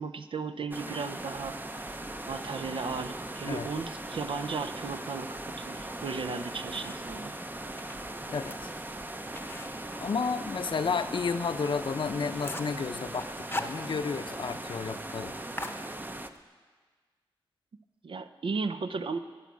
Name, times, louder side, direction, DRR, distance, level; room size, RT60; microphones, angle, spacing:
voice 1, 0.0-1.6 2.3-7.3 18.0-19.2, right 4 dB, 75° right, 10 dB, 0.6 m, -35 dB
sound 1, 0.7-16.3, right 1 dB, 20° right, 0.6 m, -39 dB
sound 2, 6.2-7.2 7.7-10.9 11.2-11.3 11.7-11.8 12.1-12.8 13.2-14.3 14.6-14.7 15.0-15.2 15.6-16.4, left 2 dB, 25° left, 0.8 m, -41 dB
voice 2, 8.3-8.7 10.0-15.3, left 5 dB, 65° left, 11 dB, 0.6 m, -32 dB
12.0 x 7.0 x 8.4 m, 1.4 s
wide cardioid pair, 75°, 9 cm